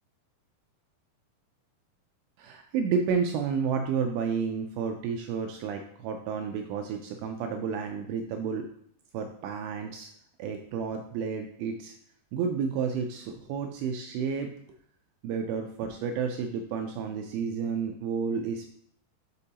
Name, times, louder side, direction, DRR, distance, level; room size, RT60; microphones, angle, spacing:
voice 1, 2.4-8.7 9.1-10.1 10.4-11.9 12.3-14.5 15.2-18.7, right 6 dB, 85° right, 4 dB, 2.2 m, -31 dB
6.5 x 5.3 x 2.8 m, 0.65 s
omnidirectional pair, 4.8 m